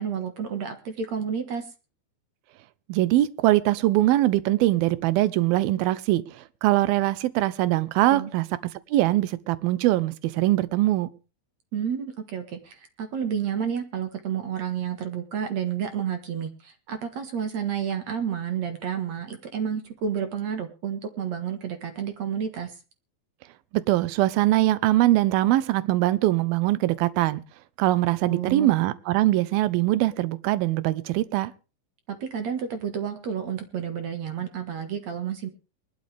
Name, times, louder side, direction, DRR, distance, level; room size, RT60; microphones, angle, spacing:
voice 1, 0.0-1.6 8.1-8.3 11.7-22.7 28.3-28.7 32.1-35.5, right 8 dB, 55° right, 2.5 m, -30 dB
voice 2, 2.9-6.2 6.6-8.5 8.9-11.1 23.7-27.4 27.8-31.5, right 16 dB, 85° right, 2.7 m, -22 dB
22.0 x 12.0 x 3.4 m
omnidirectional pair, 4.2 m